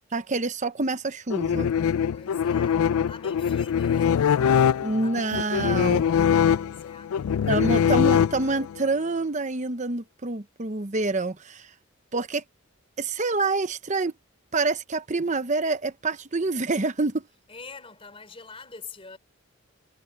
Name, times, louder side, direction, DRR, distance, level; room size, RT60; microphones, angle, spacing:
voice 1, 0.1-1.7 4.8-6.0 7.5-11.7 12.1-12.4 13.0-14.1 14.5-17.3, right 3 dB, 35° right, 0.9 m, -27 dB
sound 1, 1.3-8.8, left 8 dB, 85° left, 0.4 m, -23 dB
voice 2, 2.1-7.9 17.5-19.2, left 4 dB, 25° left, 3.9 m, -46 dB
head